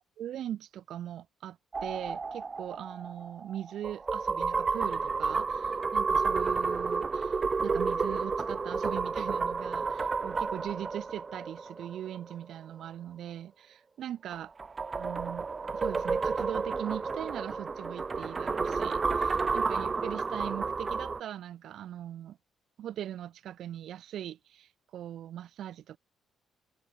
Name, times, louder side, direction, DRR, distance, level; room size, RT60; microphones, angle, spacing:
voice 1, 0.2-14.5 14.9-15.5 15.7-22.4 22.8-26.0, right 11 dB, 75° right, 4.3 m, -40 dB
sound 1, 1.7-12.3 14.3-21.2, right 4 dB, 35° right, 1.1 m, -31 dB
open air
cardioid pair, 90°, 0 cm